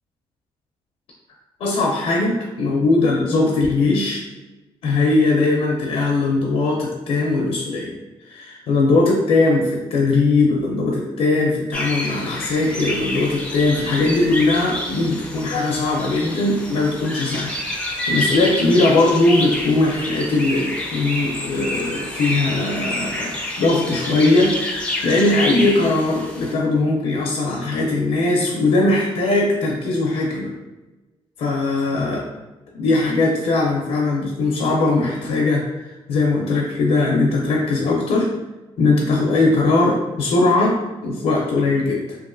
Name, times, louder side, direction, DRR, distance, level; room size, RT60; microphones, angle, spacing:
voice 1, 1.6-4.2 4.8-8.0 8.2-17.5 17.8-24.7 25.0-30.5 31.4-32.2 32.7-35.6 36.1-38.3 38.8-42.2, left 2 dB, 75° left, -1 dB, 0.5 m, -19 dB
sound 1, 11.7-26.5, left 1 dB, 10° left, 0.4 m, -28 dB
3.0 x 2.5 x 2.5 m, 1.1 s
cardioid pair, 145°, 11 cm